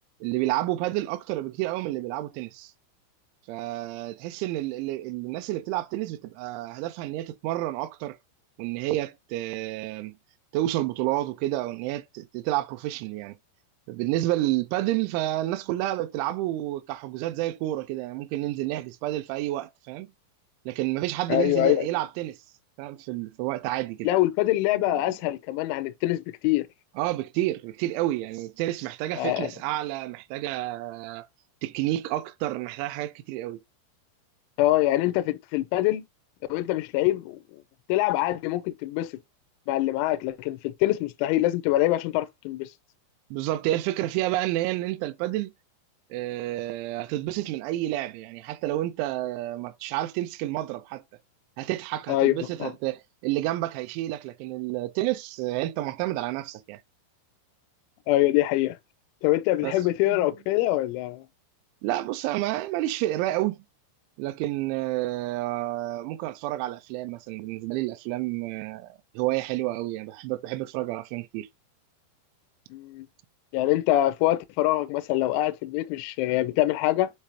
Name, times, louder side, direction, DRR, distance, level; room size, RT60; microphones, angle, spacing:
voice 1, 0.2-2.7 3.5-8.2 8.6-10.1 10.5-13.4 13.9-20.1 20.7-22.4 22.8-24.1 27.0-31.3 31.6-33.6 43.3-45.5 46.1-51.0 51.6-56.8 59.6-60.3 61.8-63.6 64.2-71.5, right 15 dB, 85° right, 2.7 m, -30 dB
voice 2, 21.3-21.9 24.0-26.7 29.1-29.5 34.6-36.0 36.5-37.6 37.9-39.1 39.7-42.7 52.1-52.3 52.6-52.7 58.1-58.8 59.2-61.2 72.7-73.1 73.5-77.1, left 15 dB, 85° left, 2.9 m, -24 dB
7.5 x 5.0 x 2.8 m
omnidirectional pair, 5.9 m